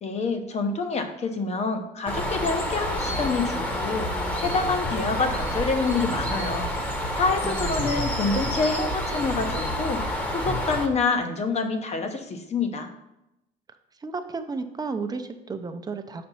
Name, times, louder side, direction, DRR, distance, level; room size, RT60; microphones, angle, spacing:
voice 1, 0.0-4.1 4.4-6.7 7.1-12.9, left 4 dB, 40° left, 6 dB, 0.9 m, -27 dB
Bird, 2.1-10.9, equal, 10° left, 1.0 m, -28 dB
voice 2, 7.4-8.1 14.0-16.2, right 4 dB, 25° right, 8 dB, 0.6 m, -33 dB
5.7 x 4.3 x 5.5 m, 0.90 s
cardioid pair, 110°, 17 cm